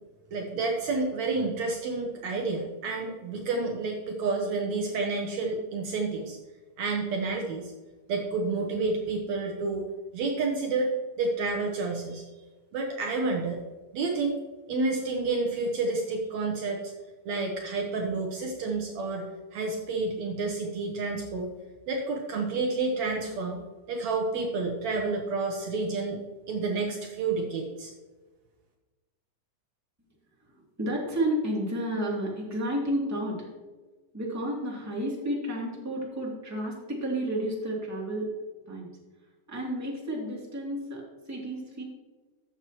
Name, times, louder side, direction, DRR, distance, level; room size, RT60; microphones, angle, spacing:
voice 1, 0.3-6.4 6.8-7.7 8.1-9.9 10.1-12.2 12.7-13.6 13.9-14.4 14.7-16.9 17.3-21.5 21.9-23.6 23.9-26.2 26.5-27.9, right 3 dB, 70° right, 1 dB, 2.1 m, -29 dB
voice 2, 30.5-33.5 34.1-38.3 38.7-38.9 39.5-41.8, right 1 dB, 5° right, -3 dB, 2.1 m, -31 dB
14.0 x 8.2 x 3.0 m, 1.3 s
omnidirectional pair, 3.7 m